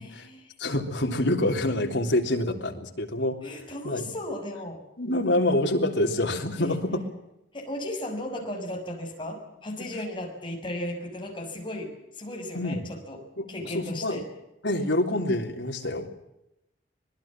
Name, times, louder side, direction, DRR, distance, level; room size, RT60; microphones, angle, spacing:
voice 1, 0.0-0.5 3.4-4.8 6.6-6.8 7.5-13.2 13.5-14.3, left 1 dB, 25° left, 1 dB, 6.4 m, -35 dB
voice 2, 0.6-3.4 3.8-4.0 5.0-7.0 12.5-12.9 13.4-13.5 13.7-14.2 14.6-16.1, left 1 dB, 75° left, 3 dB, 3.5 m, -26 dB
25.5 x 20.0 x 7.5 m, 0.86 s
head